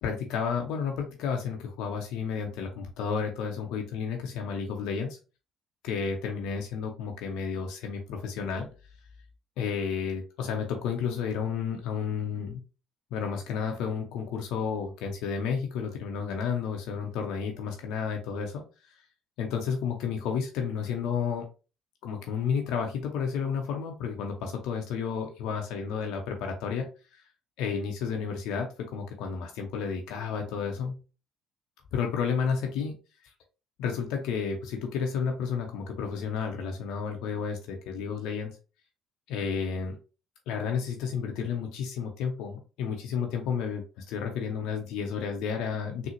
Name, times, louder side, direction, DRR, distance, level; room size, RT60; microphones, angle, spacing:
voice 1, 0.0-5.2 5.8-8.7 9.6-12.6 13.1-19.0 19.4-21.4 22.0-27.2 27.6-31.0 31.9-33.0 33.8-38.6 39.3-40.0 40.5-46.1, left 6 dB, 70° left, 2 dB, 0.5 m, -31 dB
3.8 x 2.0 x 2.8 m, 0.33 s
hypercardioid pair, 60°, 0 cm